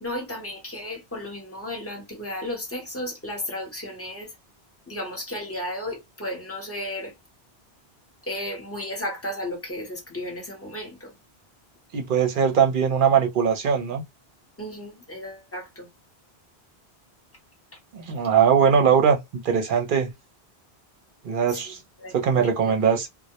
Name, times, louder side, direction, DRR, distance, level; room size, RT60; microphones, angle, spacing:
voice 1, 0.0-4.3 4.9-7.1 8.3-11.1 14.6-15.9 21.5-22.7, left 1 dB, 15° left, 0.7 m, -34 dB
voice 2, 11.9-14.0 17.9-19.2 19.4-20.1 21.2-21.8 22.1-23.1, right 7 dB, 55° right, 0.7 m, -20 dB
2.1 x 2.0 x 2.8 m
omnidirectional pair, 1.1 m